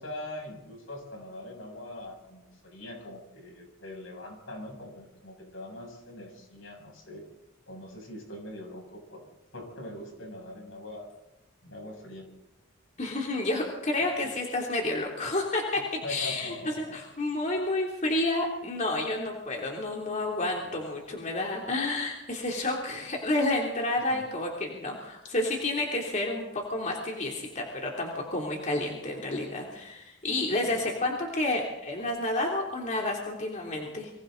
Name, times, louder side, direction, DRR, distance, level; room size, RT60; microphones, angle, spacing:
voice 1, 0.0-7.2 7.7-9.2 9.5-11.1 11.6-12.3 15.7-17.0 20.6-20.9 24.1-24.2 30.7-31.1, left 1 dB, 75° left, 1 dB, 7.4 m, -42 dB
voice 2, 13.0-15.8 16.1-16.5 16.9-34.1, left 2 dB, 40° left, -1 dB, 3.2 m, -30 dB
28.0 x 25.5 x 4.0 m, 0.91 s
head